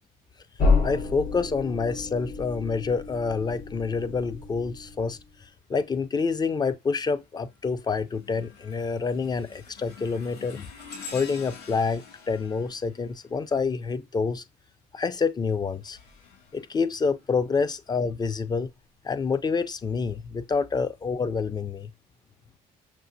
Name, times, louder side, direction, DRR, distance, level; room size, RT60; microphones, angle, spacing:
sound 1, 0.6-5.3, left 3 dB, 55° left, 2.6 m, -29 dB
voice 1, 0.8-5.2 5.7-10.7 11.1-14.4 14.9-16.0 16.5-18.7 19.0-21.9, left 5 dB, 25° left, 0.4 m, -27 dB
sound 2, 6.3-6.7 7.2-14.0 15.3-17.5 18.1-18.3 19.2-19.3, left 5 dB, 75° left, 2.5 m, -47 dB
5.9 x 2.5 x 2.6 m
cardioid pair, 110°, 17 cm